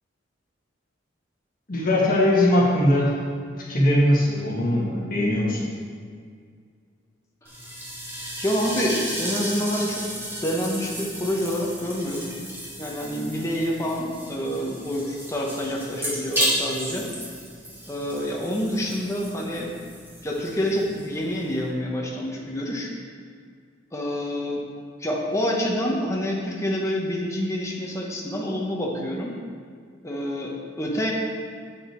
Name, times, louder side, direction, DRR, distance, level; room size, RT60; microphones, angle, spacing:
voice 1, 1.7-3.1 3.6-5.7, left 1 dB, 50° left, -4 dB, 1.7 m, -20 dB
sound 1, 7.4-21.7, equal, 10° right, 1.7 m, -33 dB
voice 2, 8.4-10.1 10.4-12.3 12.8-17.1 17.9-19.7 20.2-22.9 23.9-24.7 25.0-29.3 30.0-31.1, equal, 15° left, -2 dB, 1.0 m, -27 dB
7.9 x 6.6 x 4.5 m, 2.1 s
head